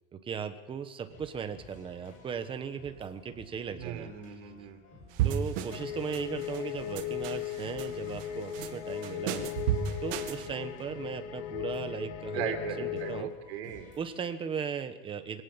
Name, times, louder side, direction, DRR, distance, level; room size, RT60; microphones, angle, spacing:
voice 1, 0.1-4.1 5.2-9.5 10.0-13.3 14.0-15.4, right 7 dB, 15° right, 9 dB, 1.1 m, -37 dB
sound 1, 1.1-14.2, left 2 dB, 25° left, 6.9 m, -54 dB
voice 2, 3.8-4.8 12.3-13.9, right 8 dB, 70° right, 5 dB, 4.6 m, -38 dB
sound 2, 5.2-5.9 6.1-6.6 7.0-7.9 8.2-8.7 9.0-10.5, right 10 dB, 50° right, 2.2 m, -32 dB
sound 3, 5.7-13.2, left 11 dB, 85° left, 2.1 m, -37 dB
24.5 x 17.5 x 7.3 m, 1.2 s
supercardioid pair, 165°, 33 cm